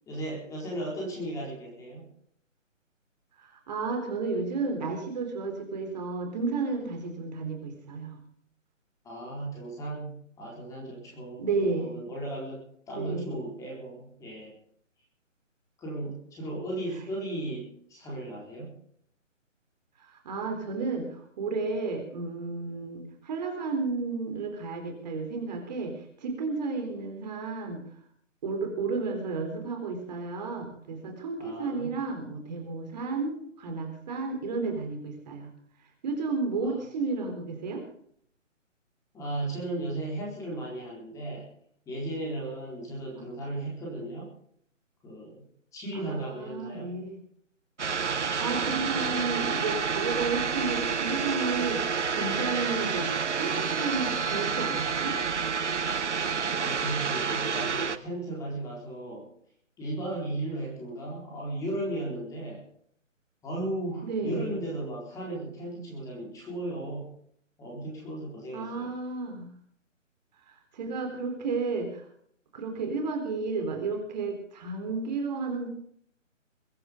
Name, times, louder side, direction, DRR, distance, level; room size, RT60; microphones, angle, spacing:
voice 1, 0.1-2.1 9.0-14.6 15.8-18.8 31.4-31.9 36.6-36.8 37.7-37.8 39.1-41.5 41.9-44.3 45.0-45.4 45.7-46.9 56.6-59.3 59.8-62.6 63.4-67.2 67.6-68.9, right 1 dB, 10° left, -3 dB, 4.2 m, -36 dB
voice 2, 3.4-8.2 11.4-11.9 12.9-13.4 20.0-27.8 28.4-35.5 36.0-37.8 45.9-47.2 48.2-55.2 64.0-64.6 68.5-69.5 70.4-72.1 72.5-75.7, right 4 dB, 35° right, 4 dB, 4.0 m, -32 dB
sound 1, 47.8-58.0, right 5 dB, 60° right, 1.2 m, -29 dB
22.5 x 11.0 x 5.3 m, 0.64 s
figure-of-eight pair, 145°, 39 cm